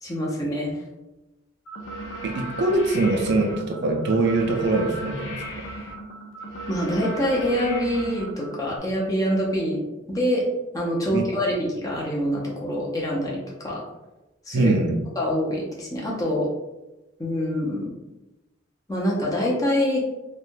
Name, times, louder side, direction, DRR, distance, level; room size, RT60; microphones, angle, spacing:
voice 1, 0.0-0.8 6.7-9.8 10.1-10.5 10.7-13.8 14.5-14.7 15.2-16.5 17.2-17.9 18.9-20.0, equal, 15° left, -3 dB, 0.6 m, -25 dB
sound 1, 1.7-8.8, equal, 70° left, 0.6 m, -36 dB
voice 2, 2.2-5.4 11.1-11.2 14.5-15.0, right 2 dB, 55° right, 3 dB, 0.4 m, -23 dB
3.2 x 2.2 x 2.6 m, 1.0 s
head